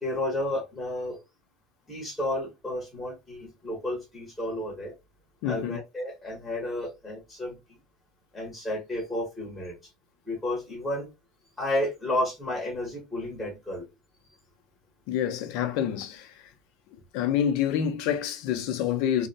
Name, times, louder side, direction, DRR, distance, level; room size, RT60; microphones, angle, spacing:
voice 1, 0.0-1.2 1.9-4.9 5.5-7.6 8.3-9.8 10.3-11.1 11.6-13.9, left 1 dB, 5° left, 0.9 m, -32 dB
voice 2, 5.4-5.8 15.1-16.5 16.9-19.3, left 9 dB, 60° left, 0.5 m, -28 dB
2.6 x 2.0 x 2.6 m
cardioid pair, 175°, 0 cm